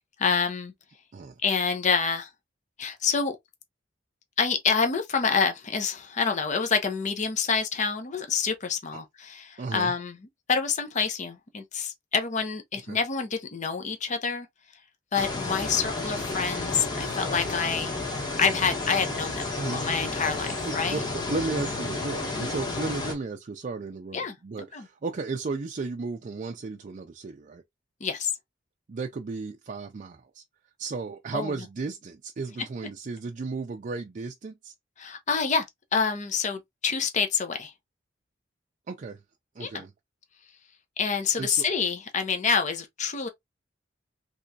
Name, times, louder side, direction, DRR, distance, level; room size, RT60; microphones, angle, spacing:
voice 1, 0.2-0.7 1.4-2.3 2.8-3.4 4.4-10.2 10.5-14.5 15.1-17.9 18.4-21.0 22.4-22.5 24.1-24.4 24.7-24.9 28.0-28.3 31.3-31.5 35.0-35.7 35.9-37.7 39.6-39.8 41.0-43.3, left 5 dB, 40° left, 0.6 m, -27 dB
voice 2, 9.6-9.9 12.9-13.0 19.6-19.8 20.4-27.6 28.9-30.4 30.8-34.7 38.9-39.2 39.6-39.9 41.4-41.6, right 4 dB, 45° right, 0.4 m, -34 dB
sound 1, 15.1-23.1, left 2 dB, 25° left, 1.1 m, -31 dB
3.4 x 3.0 x 2.6 m
head